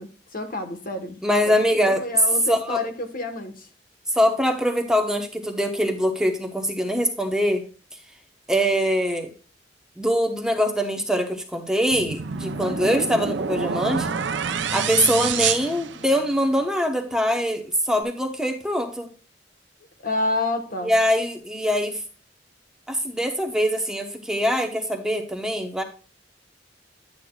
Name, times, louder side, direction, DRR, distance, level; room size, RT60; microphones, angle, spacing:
voice 1, 0.0-1.2 1.5-1.6 2.0-3.7 12.6-13.1 20.0-20.9, left 2 dB, 50° left, 1.3 m, -29 dB
voice 2, 1.2-2.0 2.5-2.8 4.1-7.6 8.5-9.3 10.0-14.1 14.7-19.1 20.8-22.0 22.9-25.8, equal, 5° right, 1.0 m, -23 dB
sound 1, 11.9-16.5, right 6 dB, 85° right, 0.6 m, -28 dB
10.5 x 8.3 x 2.3 m
head